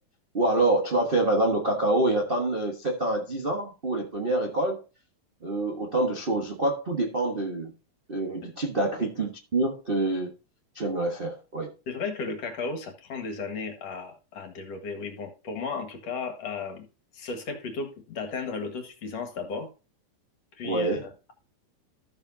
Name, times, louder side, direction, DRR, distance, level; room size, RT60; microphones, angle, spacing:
voice 1, 0.3-4.8 5.4-7.7 8.1-10.3 10.7-11.7 20.6-21.0, right 2 dB, 70° right, 0.5 m, -26 dB
voice 2, 11.9-16.9 17.1-19.7 20.6-21.3, left 4 dB, 60° left, 2.8 m, -35 dB
13.5 x 7.2 x 2.8 m
omnidirectional pair, 3.5 m